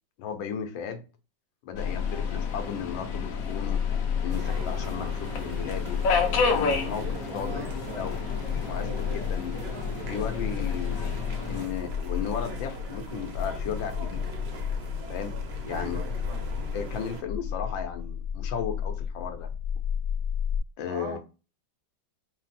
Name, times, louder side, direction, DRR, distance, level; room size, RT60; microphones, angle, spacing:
voice 1, 0.2-1.0 1.6-3.9 4.2-6.0 6.4-8.3 8.6-9.6 9.9-11.2 11.5-14.3 15.1-15.4 15.7-16.0 16.7-19.5 20.8-21.2, left 7 dB, 80° left, 1.4 m, -35 dB
sound 1, 1.7-20.6, left 7 dB, 25° left, 1.0 m, -32 dB
Subway metro underground, 1.8-11.6, left 4 dB, 55° left, 1.0 m, -32 dB
sound 2, 4.3-17.2, right 2 dB, 50° right, 0.7 m, -40 dB
voice 2, 15.7-16.5 18.5-18.7 20.9-21.2, right 4 dB, 70° right, 1.0 m, -40 dB
5.3 x 2.0 x 4.1 m
omnidirectional pair, 2.1 m